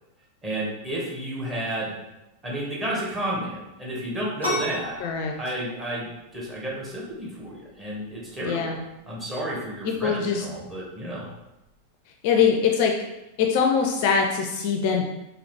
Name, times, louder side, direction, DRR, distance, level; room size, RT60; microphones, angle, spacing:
voice 1, 0.4-2.0 2.4-4.9 5.4-8.7 9.1-11.3, right 1 dB, 15° right, -5 dB, 1.4 m, -31 dB
sound 1, 4.4-11.8, left 1 dB, 80° right, 1.4 m, -37 dB
voice 2, 5.0-5.4 8.4-8.8 9.8-10.5 12.2-13.0 13.4-15.1, left 6 dB, 45° left, 3 dB, 0.4 m, -23 dB
3.8 x 2.8 x 3.3 m, 0.97 s
figure-of-eight pair, 90°, 0 cm